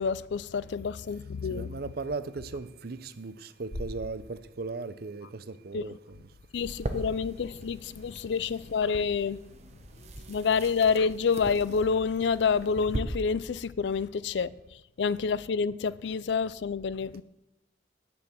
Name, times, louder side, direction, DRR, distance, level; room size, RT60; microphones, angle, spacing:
voice 1, 0.0-1.7 5.7-5.8 6.5-9.4 10.3-14.5 15.0-17.2, left 5 dB, 70° left, 0.4 m, -28 dB
voice 2, 1.4-6.3, right 3 dB, 55° right, 0.6 m, -37 dB
sound 1, 3.7-5.8, equal, 30° left, 2.2 m, -43 dB
sound 2, 6.6-13.0, right 1 dB, 35° right, 1.0 m, -40 dB
10.5 x 6.2 x 7.7 m
head